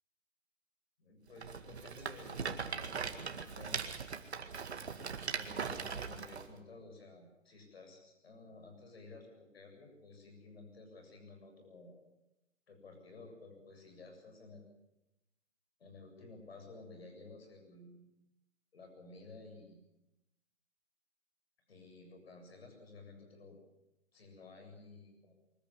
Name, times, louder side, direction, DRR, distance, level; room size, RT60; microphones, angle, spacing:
voice 1, 1.0-3.8 5.4-12.0 12.7-14.7 15.8-18.0 18.7-19.8 21.7-23.6 24.1-25.3, left 3 dB, 50° left, 4 dB, 7.6 m, -54 dB
Rattle, 1.4-6.5, right 5 dB, 60° right, 2.2 m, -40 dB
24.0 x 14.5 x 9.9 m, 0.90 s
hypercardioid pair, 165°, 38 cm